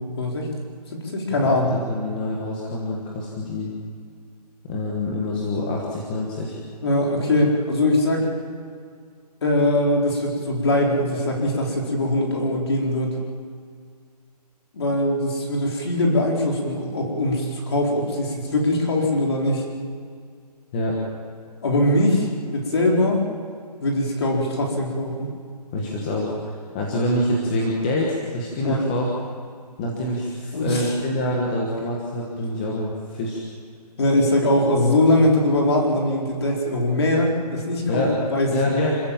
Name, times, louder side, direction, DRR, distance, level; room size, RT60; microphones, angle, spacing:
voice 1, 0.2-0.5 0.9-1.7 6.8-8.3 9.4-13.2 14.7-19.6 21.6-23.2 23.8-25.3 28.6-28.8 30.5-30.9 34.0-38.0 38.3-38.8, left 1 dB, 40° left, -1 dB, 4.2 m, -21 dB
voice 2, 1.4-3.7 4.7-6.6 20.7-21.0 25.7-29.1 29.8-33.4 37.9-38.1 38.5-39.0, left 1 dB, 10° left, -2 dB, 1.3 m, -26 dB
27.5 x 15.0 x 7.3 m, 2.2 s
hypercardioid pair, 175°, 21 cm